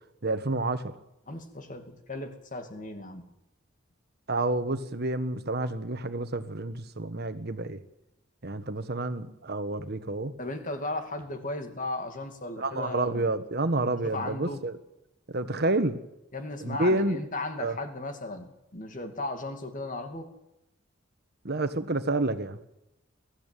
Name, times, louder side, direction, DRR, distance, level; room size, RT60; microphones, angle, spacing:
voice 1, 0.2-0.9 4.3-7.8 8.4-10.3 12.6-14.8 15.3-16.0 16.6-17.2 17.6-17.8 21.4-22.6, right 2 dB, 55° right, 10 dB, 1.3 m, -29 dB
voice 2, 1.3-3.2 10.4-13.3 13.8-14.6 16.3-20.3, left 2 dB, 40° left, 6 dB, 2.5 m, -36 dB
22.0 x 14.5 x 9.1 m, 0.89 s
head